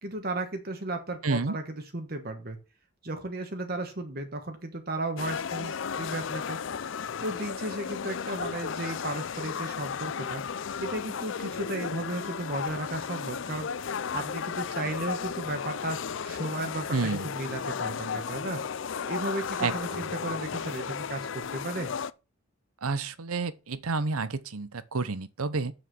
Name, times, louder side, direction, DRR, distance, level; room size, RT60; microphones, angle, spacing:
voice 1, 0.0-2.6 3.0-6.6 7.2-10.4 10.8-13.7 14.1-18.6 19.0-21.9, right 2 dB, 45° right, 1.2 m, -34 dB
voice 2, 1.2-1.6 16.9-17.3 19.6-20.1 22.8-25.7, right 4 dB, 85° right, 0.8 m, -30 dB
sound 1, 5.2-22.1, left 6 dB, 60° left, 0.4 m, -34 dB
7.3 x 6.5 x 6.1 m
head